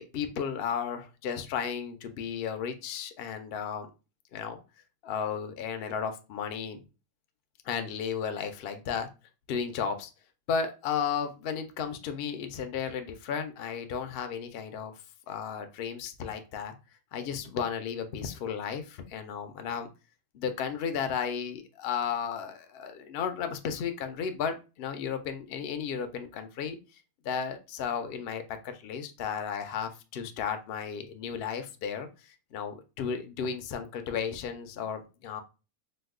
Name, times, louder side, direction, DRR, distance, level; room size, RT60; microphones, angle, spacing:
voice 1, 0.0-3.9 4.3-4.6 5.0-6.8 7.6-9.1 9.5-10.1 10.5-14.9 15.3-16.7 17.1-19.9 20.3-35.4, left 7 dB, 75° left, 7 dB, 0.5 m, -34 dB
3.0 x 2.1 x 3.4 m, 0.31 s
omnidirectional pair, 1.6 m